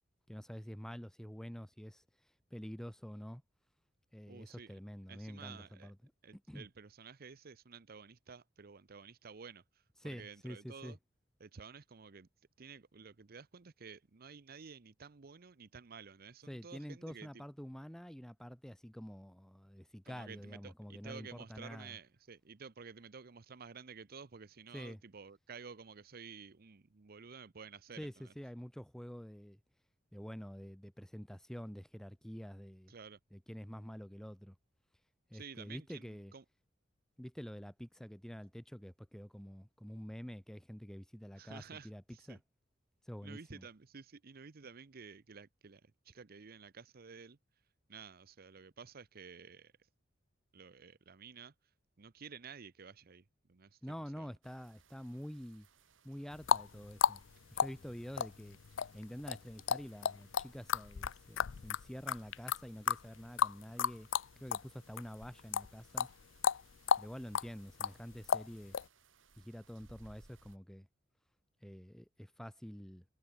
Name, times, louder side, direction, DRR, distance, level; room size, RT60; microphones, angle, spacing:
voice 1, 0.3-2.0 2.5-3.4 4.1-6.0 6.3-6.7 10.0-11.0 16.5-22.0 24.7-25.0 28.0-29.6 30.1-32.9 33.3-34.6 35.3-36.3 37.2-42.0 42.3-42.4 43.1-43.7 53.8-55.7 56.0-57.2 57.5-58.6 58.9-64.1 64.4-66.1 67.0-68.8 69.4-70.9 71.6-73.0, equal, 5° left, 0.8 m, -47 dB
voice 2, 4.3-4.8 5.1-5.9 6.2-9.6 10.0-11.0 11.4-12.3 12.6-17.3 20.0-28.3 32.9-33.2 35.3-36.4 41.4-42.4 43.2-47.4 47.9-49.7 50.5-51.5 52.0-53.8 54.2-54.3, right 5 dB, 50° right, 0.7 m, -52 dB
sound 1, 54.4-70.6, right 4 dB, 75° right, 2.5 m, -67 dB
sound 2, 56.3-64.7 65.0-68.9, left 7 dB, 75° left, 0.5 m, -33 dB
head